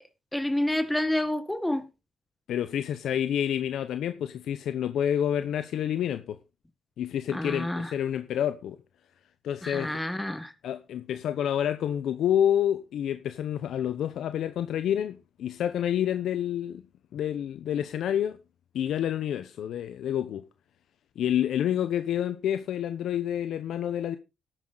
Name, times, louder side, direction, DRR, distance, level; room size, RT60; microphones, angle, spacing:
voice 1, 0.3-1.9 7.3-7.9 9.6-10.5, left 1 dB, 5° left, 1.4 m, -28 dB
voice 2, 2.5-6.4 7.0-8.8 9.4-10.0 10.6-16.8 17.1-18.4 18.7-20.5 21.2-24.2, left 10 dB, 75° left, 0.8 m, -28 dB
12.5 x 9.0 x 3.9 m
cardioid pair, 90°, 0 cm